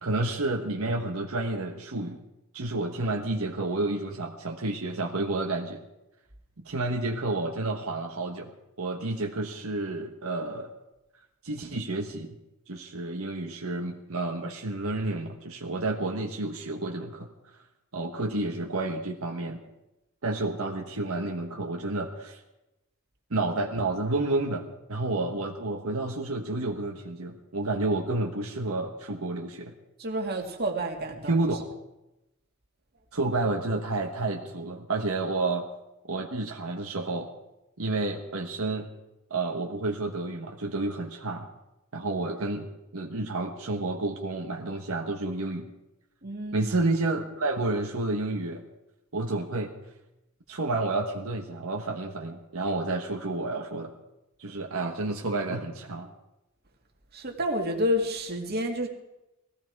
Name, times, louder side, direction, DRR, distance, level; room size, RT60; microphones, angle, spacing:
voice 1, 0.0-2.2 2.5-5.8 6.6-8.5 8.8-10.7 11.4-12.4 12.7-17.3 17.9-19.6 20.2-22.4 23.3-29.7 31.3-31.7 33.1-35.7 36.1-37.3 37.8-38.9 39.3-41.5 41.9-42.7 42.9-45.7 46.5-48.6 49.1-49.7 50.5-53.9 54.4-56.1, right 2 dB, 80° right, 2 dB, 1.4 m, -30 dB
voice 2, 30.0-31.4 46.2-46.7 57.1-58.9, equal, 50° right, 2 dB, 2.4 m, -29 dB
19.5 x 15.5 x 4.7 m, 0.92 s
head